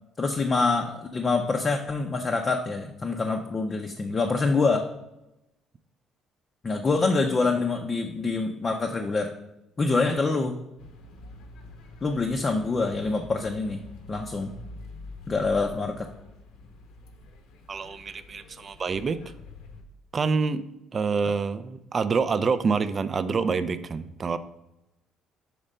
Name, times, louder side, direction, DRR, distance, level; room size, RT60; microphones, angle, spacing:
voice 1, 0.2-4.9 6.6-9.3 9.8-10.5 12.0-13.8 14.1-14.5 15.3-16.1, left 3 dB, 25° left, 3 dB, 0.5 m, -25 dB
sound 1, 10.8-19.8, left 2 dB, 80° left, 0.9 m, -46 dB
voice 2, 17.7-19.2 20.1-20.6 20.9-24.4, right 5 dB, 30° right, 13 dB, 0.3 m, -26 dB
5.0 x 4.3 x 5.3 m, 0.92 s
cardioid pair, 135°, 0 cm